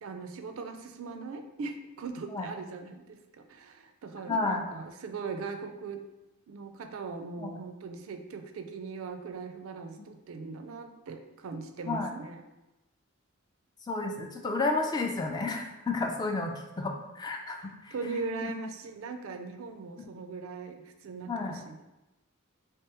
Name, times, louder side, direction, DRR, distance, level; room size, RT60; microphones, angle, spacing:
voice 1, 0.0-6.0 6.5-12.4 17.9-21.8, right 4 dB, 75° right, 6 dB, 0.4 m, -40 dB
voice 2, 4.3-4.7 7.4-7.6 11.9-12.1 13.9-17.9 18.4-18.5 20.0-20.1 21.3-21.6, left 3 dB, 20° left, 2 dB, 0.3 m, -31 dB
3.4 x 3.3 x 2.9 m, 0.98 s
head